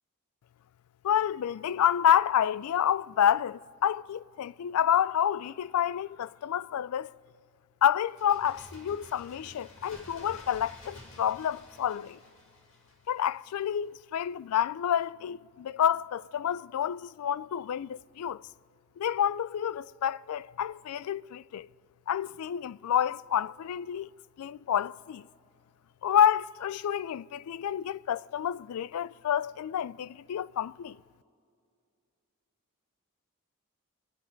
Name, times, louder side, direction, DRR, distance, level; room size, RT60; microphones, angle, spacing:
voice 1, 1.0-7.2 7.8-12.2 13.1-18.4 19.0-21.7 22.1-24.1 24.4-25.3 26.0-31.0, left 9 dB, 80° left, 0.3 m, -29 dB
Bird, 8.0-13.6 13.8-13.9, left 1 dB, 60° left, 2.2 m, -51 dB
24.5 x 11.0 x 5.2 m
head